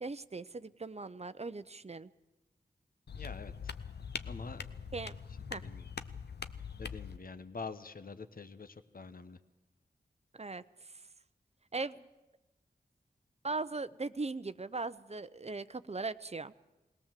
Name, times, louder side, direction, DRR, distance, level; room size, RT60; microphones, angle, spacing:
voice 1, 0.0-2.1 4.9-5.2 5.5-5.6 10.3-10.9 11.7-12.1 13.4-16.5, right 3 dB, 40° right, 14 dB, 0.7 m, -39 dB
sound 1, 3.1-7.2, left 6 dB, 70° left, 0.8 m, -43 dB
voice 2, 3.1-3.7 4.2-4.6 5.5-5.9 6.8-9.4, left 4 dB, 55° left, 11 dB, 1.1 m, -46 dB
20.5 x 17.5 x 7.6 m, 1.0 s
cardioid pair, 40°, 18 cm